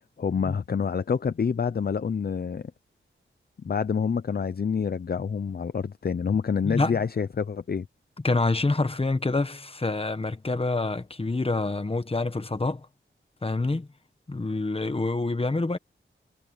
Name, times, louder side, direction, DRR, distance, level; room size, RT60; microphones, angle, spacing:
voice 1, 0.2-2.7 3.6-7.9, left 6 dB, 50° left, 0.6 m, -27 dB
voice 2, 6.6-7.0 8.2-12.9 13.4-13.9 14.3-15.8, left 3 dB, 25° left, 1.4 m, -26 dB
wide cardioid pair, 90°, 21 cm